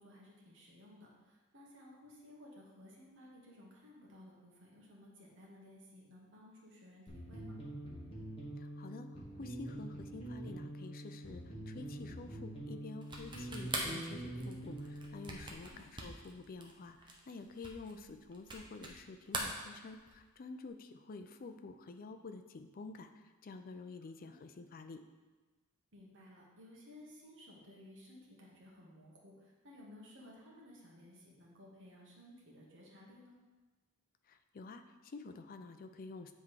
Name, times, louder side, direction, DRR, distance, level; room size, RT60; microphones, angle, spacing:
voice 1, 0.0-7.6 15.6-15.8 17.8-18.0 24.0-24.4 25.9-33.3, left 1 dB, 55° right, -3 dB, 1.4 m, -57 dB
sound 1, 7.1-15.5, right 1 dB, 25° left, 1.3 m, -45 dB
voice 2, 8.6-23.1 23.4-25.0 34.3-36.3, left 3 dB, 40° left, 8 dB, 0.4 m, -49 dB
sound 2, 13.0-19.0 19.3-20.3, right 2 dB, 20° right, 0.8 m, -43 dB
7.6 x 3.6 x 4.8 m, 1.3 s
head